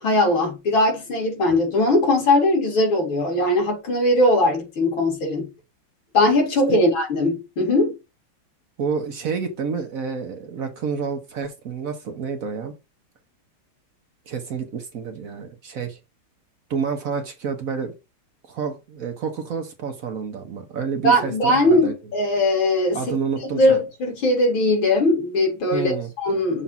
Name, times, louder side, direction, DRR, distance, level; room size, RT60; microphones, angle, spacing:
voice 1, 0.0-5.5 6.1-7.9 21.0-23.0 23.5-26.6, left 1 dB, 65° left, 3.0 m, -20 dB
voice 2, 8.8-12.7 14.3-16.0 16.7-17.9 18.5-21.9 22.9-23.8 25.7-26.1, right 6 dB, 60° right, 0.9 m, -29 dB
7.0 x 2.5 x 5.5 m
omnidirectional pair, 2.4 m